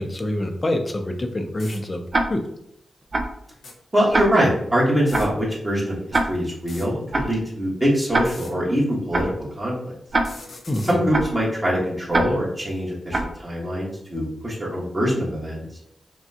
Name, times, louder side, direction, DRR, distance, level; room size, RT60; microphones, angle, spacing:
voice 1, 0.0-2.0 2.3-2.4 10.7-11.0, left 1 dB, 30° left, 5 dB, 0.6 m, -26 dB
sound 1, 1.2-1.3 1.6-1.8 3.5-3.7 5.0-5.3 6.6-6.9 8.1-8.5 10.1-11.0, left 3 dB, 75° left, 0.9 m, -41 dB
Tick-tock, 2.1-2.2 3.1-3.3 4.1-4.2 5.1-5.3 6.1-6.2 7.1-7.3 8.1-8.2 9.1-9.3 10.1-10.2 11.1-11.3 12.1-12.2 13.1-13.3, right 2 dB, 40° right, 0.6 m, -21 dB
voice 2, 3.9-9.7 10.8-15.6, equal, 20° right, -6 dB, 1.4 m, -23 dB
6.0 x 2.3 x 2.8 m, 0.77 s
cardioid pair, 80°, 0 cm